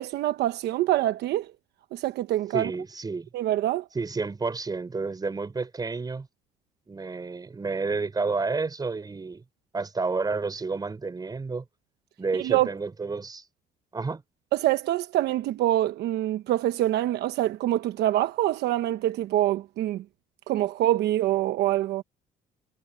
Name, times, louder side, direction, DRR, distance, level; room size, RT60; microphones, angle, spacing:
voice 1, 0.0-1.5 1.9-2.7 3.3-3.8 12.4-12.7 14.5-20.0 20.5-22.0, right 14 dB, 75° right, 1.0 m, -25 dB
voice 2, 2.5-3.3 3.9-6.3 6.9-9.4 9.7-11.6 12.2-13.4 13.9-14.2, right 4 dB, 25° right, 5.9 m, -30 dB
cardioid pair, 110°, 17 cm